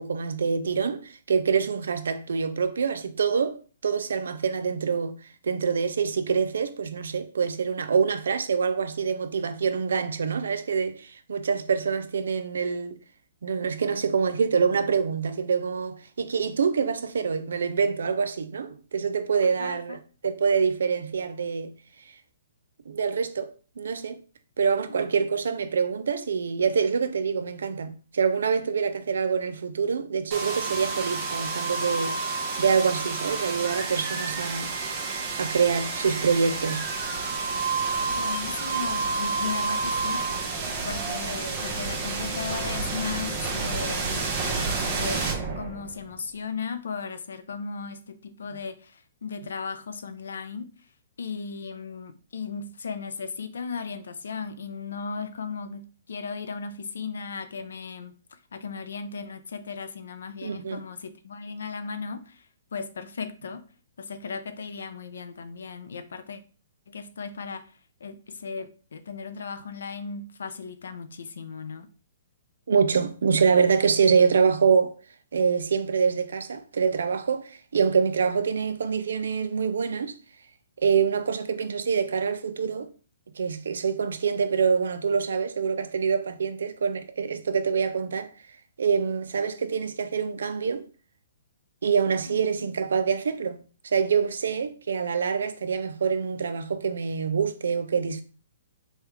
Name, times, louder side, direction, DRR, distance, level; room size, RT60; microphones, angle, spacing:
voice 1, 0.0-5.1 5.4-13.0 13.4-21.7 22.9-23.5 23.8-24.2 24.6-32.1 32.6-34.7 35.4-36.9 60.4-60.8 72.7-74.9 75.3-80.1 80.8-82.9 83.4-88.3 88.8-90.8 91.8-93.6 93.8-98.2, right 6 dB, 80° right, 0.4 m, -25 dB
voice 2, 19.6-20.0 24.9-25.0 38.1-44.3 44.7-50.9 51.2-63.6 64.0-66.4 66.9-71.9 92.3-92.4, left 5 dB, 80° left, 0.4 m, -36 dB
sound 1, 30.3-46.1, right 4 dB, 35° right, 0.8 m, -29 dB
3.2 x 2.3 x 3.2 m
hypercardioid pair, 145°, 0 cm